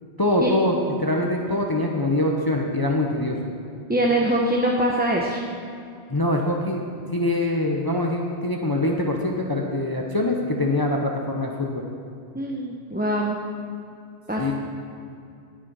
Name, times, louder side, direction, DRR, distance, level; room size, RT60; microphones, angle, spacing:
voice 1, 0.2-3.4 6.1-11.8 14.4-14.5, left 1 dB, 20° left, 0 dB, 0.9 m, -24 dB
voice 2, 3.9-5.4 12.3-13.4 14.3-14.5, right 1 dB, 10° right, -2 dB, 0.7 m, -23 dB
18.5 x 6.3 x 5.5 m, 2.5 s
omnidirectional pair, 1.2 m